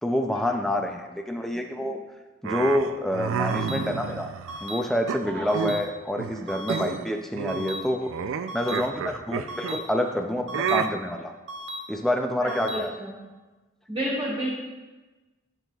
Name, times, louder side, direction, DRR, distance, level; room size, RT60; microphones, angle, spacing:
voice 1, 0.0-2.0 2.4-4.3 4.6-8.1 8.5-11.3 11.9-12.9, left 1 dB, ahead, 3 dB, 0.3 m, -27 dB
sound 1, 2.4-4.6 5.1-5.9 6.2-6.4 6.7-7.1 7.4-9.8 10.5-10.9, right 6 dB, 90° right, 0.3 m, -30 dB
sound 2, 3.5-3.8 4.5-4.8 5.5-5.8 6.5-6.8 7.5-7.8 8.5-8.8 9.5-9.8 10.5-10.8 11.5-11.8 12.5-12.8, equal, 60° right, 0.9 m, -36 dB
voice 2, 12.4-13.1 13.9-14.6, equal, 25° right, -9 dB, 1.6 m, -30 dB
9.1 x 5.8 x 2.3 m, 1.2 s
head